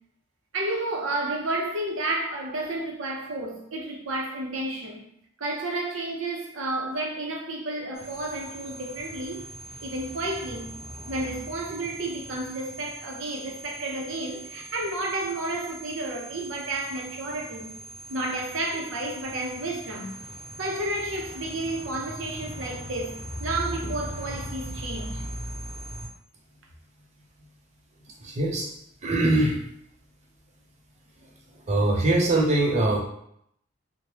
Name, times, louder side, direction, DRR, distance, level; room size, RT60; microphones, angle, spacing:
voice 1, 0.5-5.1 5.4-9.4 9.8-10.7 11.1-17.8 18.1-20.1 20.6-25.2, right 2 dB, 80° right, 0.6 m, -31 dB
sound 1, 7.9-26.1, equal, 30° left, 1.3 m, -40 dB
voice 2, 28.2-28.7 29.0-29.6 31.7-33.0, right 2 dB, 35° right, 0.5 m, -22 dB
3.1 x 2.1 x 2.8 m
head